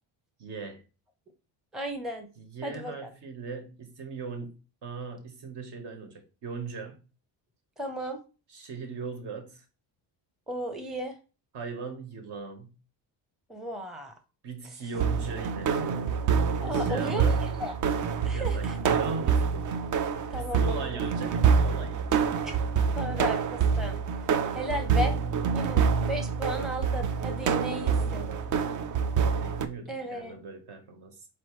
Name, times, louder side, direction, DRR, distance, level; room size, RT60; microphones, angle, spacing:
voice 1, 0.4-0.8 2.4-7.1 8.5-9.6 11.5-12.7 14.4-16.2 16.6-17.4 18.3-19.7 20.4-22.3 27.7-28.6 29.4-31.3, right 4 dB, 60° right, 1.3 m, -39 dB
voice 2, 1.7-2.3 2.6-3.1 7.8-8.2 10.5-11.1 13.5-14.1 16.6-17.3 17.6-17.7 18.3-18.7 20.3-20.9 22.4-22.5 23.0-24.0 24.5-25.1 25.5-25.8 26.1-28.2 29.9-30.4, equal, ahead, 0.6 m, -35 dB
sound 1, 14.9-29.7, right 6 dB, 45° right, 0.5 m, -26 dB
4.5 x 3.0 x 3.1 m
cardioid pair, 125°, 45 cm